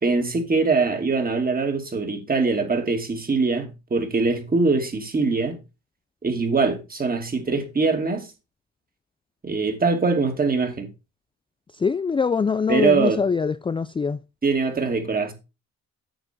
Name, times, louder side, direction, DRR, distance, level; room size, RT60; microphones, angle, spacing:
voice 1, 0.0-5.6 6.2-8.3 9.4-10.9 12.7-13.2 14.4-15.3, right 4 dB, 30° right, 2.7 m, -22 dB
voice 2, 11.7-14.2, left 5 dB, 15° left, 0.4 m, -23 dB
9.1 x 6.1 x 4.5 m
cardioid pair, 90°, 30 cm